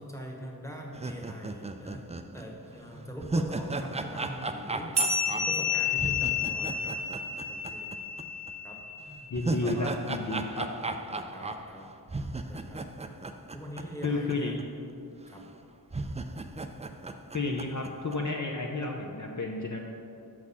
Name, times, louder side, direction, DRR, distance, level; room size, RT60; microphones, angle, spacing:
voice 1, 0.0-2.0 2.3-7.0 7.5-8.0 8.6-8.8 9.5-9.9 11.3-11.9 12.5-12.8 13.5-14.5 15.3-15.4, equal, 5° left, -1 dB, 1.2 m, -42 dB
sound 1, 0.9-8.2 8.5-8.6 9.1-14.3 14.6-14.7 15.4-15.5 15.9-18.2, right 2 dB, 20° right, 0.3 m, -36 dB
sound 2, 5.0-9.8, left 5 dB, 85° right, 1.0 m, -31 dB
voice 2, 9.3-10.7 14.0-14.6 17.3-19.8, left 2 dB, 45° left, 0 dB, 0.7 m, -31 dB
6.4 x 6.1 x 5.5 m, 2.6 s
wide cardioid pair, 60°, 40 cm